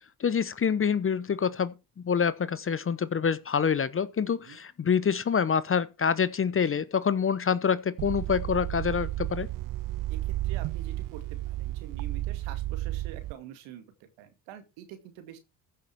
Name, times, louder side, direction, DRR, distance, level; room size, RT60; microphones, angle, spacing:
voice 1, 0.2-1.7 2.0-9.5, left 7 dB, 30° left, 0.9 m, -26 dB
sound 1, 8.0-13.3, right 16 dB, 45° right, 0.5 m, -32 dB
voice 2, 10.1-13.8 14.2-15.4, right 10 dB, 70° right, 2.5 m, -46 dB
14.5 x 6.7 x 4.7 m
hypercardioid pair, 65°, 47 cm